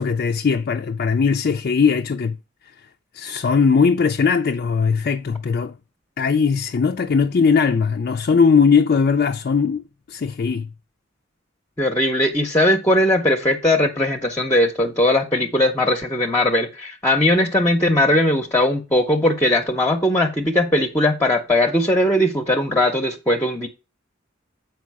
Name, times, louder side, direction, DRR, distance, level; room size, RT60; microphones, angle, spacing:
voice 1, 0.0-2.4 3.1-5.7 6.2-9.8 10.1-10.7, left 5 dB, 50° left, 0.4 m, -19 dB
voice 2, 11.8-23.7, left 1 dB, 10° left, 0.7 m, -19 dB
7.4 x 4.7 x 4.7 m
head